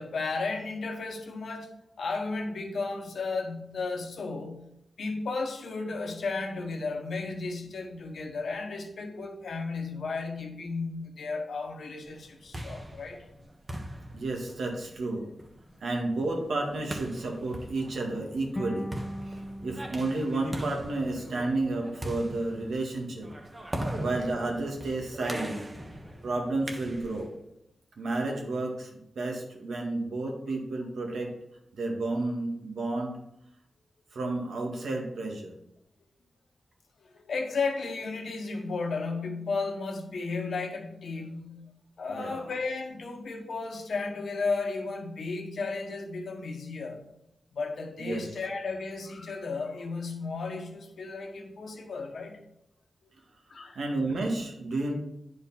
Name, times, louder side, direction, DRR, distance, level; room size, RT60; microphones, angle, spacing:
voice 1, 0.0-4.6 5.0-13.2 15.7-15.8 37.1-41.7 42.0-47.0 47.5-52.4 53.5-53.8, left 4 dB, 80° left, 2 dB, 1.5 m, -34 dB
sound 1, 12.2-27.4, right 1 dB, 25° right, 1.3 m, -40 dB
voice 2, 14.1-15.3 15.8-18.9 19.3-23.3 23.7-25.7 26.2-27.3 28.0-28.9 29.2-31.3 31.8-33.1 34.1-35.5 42.1-42.4 48.0-48.3 53.8-54.9, right 2 dB, 85° right, 0 dB, 1.9 m, -31 dB
sound 2, 18.6-21.7, equal, 15° left, 0.7 m, -40 dB
9.9 x 5.2 x 4.3 m, 0.81 s
wide cardioid pair, 85°, 0 cm